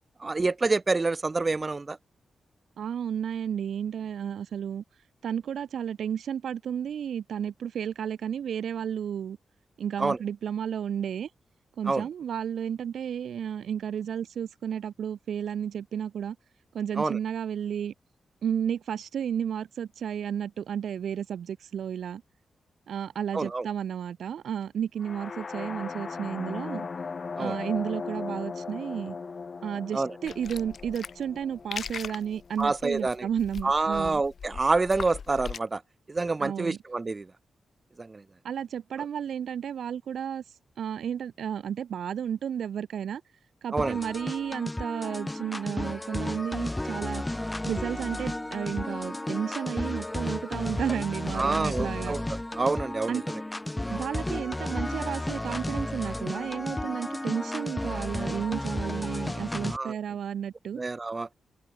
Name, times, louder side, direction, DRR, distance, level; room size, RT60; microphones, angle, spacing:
voice 1, 0.2-2.0 10.0-10.2 11.9-12.0 17.0-17.2 23.3-23.6 27.4-27.6 29.9-30.1 32.6-33.3 33.6-35.8 36.1-37.3 38.0-38.2 43.7-44.0 51.3-52.2 52.5-53.2 59.7-59.9 60.8-61.3, right 3 dB, 30° right, 0.5 m, -27 dB
voice 2, 2.8-4.8 5.2-9.4 9.8-11.3 11.8-16.4 16.7-17.9 18.4-22.2 22.9-26.9 27.4-29.2 29.6-34.2 36.4-36.8 38.4-40.4 40.8-43.2 43.6-47.2 47.6-52.2 53.1-53.2 53.9-60.8, right 8 dB, 80° right, 2.2 m, -32 dB
sound 1, 25.0-32.9, left 4 dB, 45° left, 4.5 m, -38 dB
sound 2, 30.3-35.6, left 6 dB, 60° left, 1.6 m, -40 dB
sound 3, 43.8-59.8, left 1 dB, 10° left, 0.8 m, -33 dB
cardioid pair, 100°, 0 cm